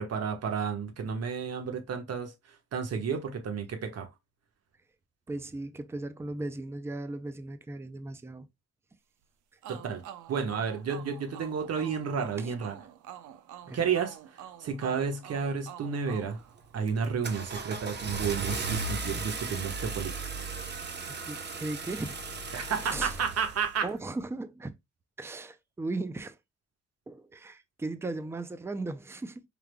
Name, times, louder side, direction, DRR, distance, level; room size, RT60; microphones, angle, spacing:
voice 1, 0.0-2.3 2.7-4.1 9.7-10.0 10.3-12.8 13.7-14.2 14.6-16.4 16.7-20.1 22.5-23.9, right 6 dB, 55° right, 1.2 m, -31 dB
voice 2, 5.3-8.5 12.4-12.5 13.7-13.8 21.3-22.2 22.9-23.2 23.8-24.7 25.2-26.4 27.1-29.4, right 2 dB, 10° right, 0.5 m, -37 dB
sound 1, 9.6-17.2, right 10 dB, 80° right, 0.7 m, -48 dB
Car / Engine starting, 16.1-16.4 16.9-23.8, right 3 dB, 35° right, 1.0 m, -36 dB
4.7 x 3.5 x 2.2 m
cardioid pair, 90°, 30 cm